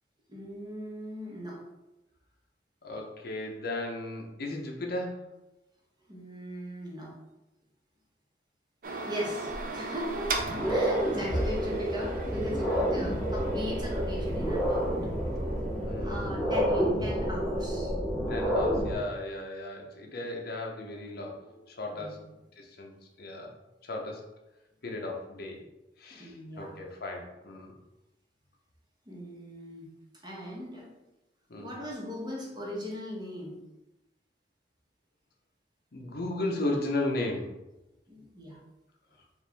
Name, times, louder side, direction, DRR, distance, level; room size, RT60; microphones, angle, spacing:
voice 1, 0.3-1.6 6.1-7.1 9.1-10.3 10.7-15.0 15.7-17.9 21.9-22.2 26.1-26.7 29.1-29.9 30.2-30.9 31.6-33.6 38.1-38.6, equal, 25° right, -4 dB, 1.1 m, -39 dB
voice 2, 2.8-5.3 11.3-11.9 15.8-16.6 18.3-22.2 22.6-22.9 23.2-23.5 23.8-24.3 24.8-25.6 26.0-27.7 31.5-31.7 35.9-37.6, left 2 dB, 60° left, 1 dB, 0.7 m, -35 dB
sound 1, 8.8-15.5, right 3 dB, 50° right, 0.5 m, -38 dB
sound 2, 9.5-9.6 10.1-18.9, equal, ahead, 0.9 m, -29 dB
4.7 x 2.5 x 3.4 m, 0.97 s
head